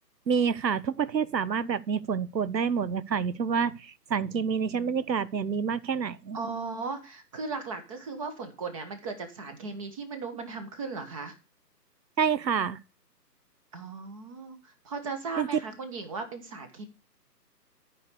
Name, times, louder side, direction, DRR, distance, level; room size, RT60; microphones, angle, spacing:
voice 1, 0.3-6.4 12.2-12.8 15.4-15.5, right 6 dB, 85° right, 1.0 m, -28 dB
voice 2, 6.3-11.3 13.7-16.9, right 4 dB, 20° right, 1.1 m, -37 dB
13.0 x 5.0 x 6.7 m
figure-of-eight pair, 145°, 50 cm